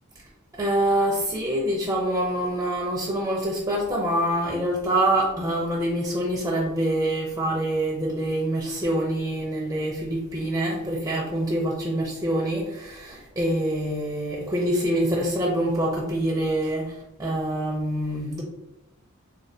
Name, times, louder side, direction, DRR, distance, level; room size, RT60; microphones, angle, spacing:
voice 1, 0.5-18.4, right 1 dB, 15° right, -3 dB, 0.4 m, -25 dB
3.2 x 2.2 x 2.6 m, 0.94 s
head